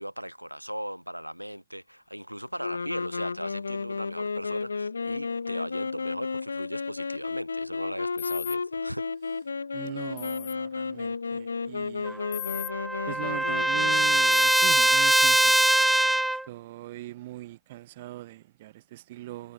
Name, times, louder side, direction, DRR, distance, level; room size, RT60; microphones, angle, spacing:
voice 1, 0.0-9.1, equal, 90° right, 3.7 m, -38 dB
sound 1, 2.6-14.5, left 4 dB, 75° left, 2.1 m, -33 dB
sound 2, 8.2-8.6 10.2-10.5 12.3-12.7 14.3-14.7, left 22 dB, 50° left, 1.0 m, -36 dB
voice 2, 9.7-12.3 13.1-15.6 16.5-19.5, right 16 dB, 55° right, 2.7 m, -41 dB
Trumpet, 12.1-16.4, right 1 dB, 5° right, 0.9 m, -22 dB
figure-of-eight pair, 90°, 0 cm